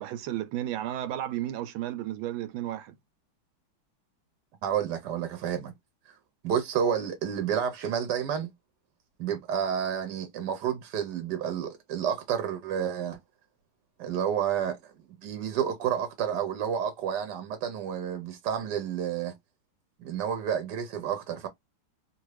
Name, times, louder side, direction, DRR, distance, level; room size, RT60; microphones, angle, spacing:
voice 1, 0.0-3.0, right 12 dB, 85° right, 1.4 m, -33 dB
voice 2, 4.6-5.7 6.4-8.5 9.2-13.2 14.0-14.8 15.2-19.3 20.0-21.5, right 8 dB, 65° right, 1.2 m, -30 dB
3.0 x 2.6 x 3.1 m
omnidirectional pair, 2.2 m